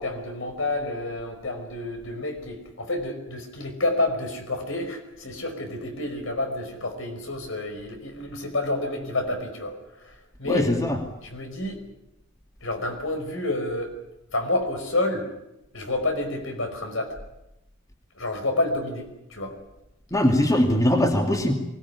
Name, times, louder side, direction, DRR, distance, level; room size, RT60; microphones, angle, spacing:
voice 1, 0.0-10.7 11.2-11.8 12.6-14.0 14.3-15.3 15.7-17.1 18.1-19.5, left 2 dB, 75° left, 5 dB, 5.2 m, -29 dB
voice 2, 10.5-11.0 20.1-21.5, left 1 dB, 15° left, 4 dB, 2.5 m, -21 dB
23.5 x 19.0 x 9.9 m, 0.90 s
head